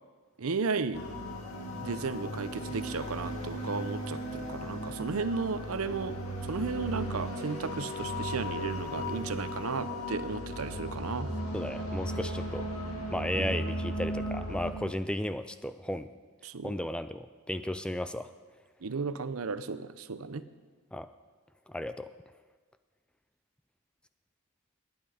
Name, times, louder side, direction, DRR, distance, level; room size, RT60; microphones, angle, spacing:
voice 1, 0.4-1.0 1.8-6.2 6.4-11.3 13.3-13.6 16.4-16.8 18.8-20.4, right 4 dB, 80° right, 12 dB, 0.7 m, -34 dB
sound 1, 0.9-14.7, equal, 85° left, 2.2 m, -36 dB
voice 2, 11.5-12.6 13.1-16.1 16.6-18.3 20.9-21.1 21.7-22.1, left 1 dB, 5° left, 11 dB, 0.3 m, -34 dB
19.5 x 9.8 x 5.1 m, 1.4 s
head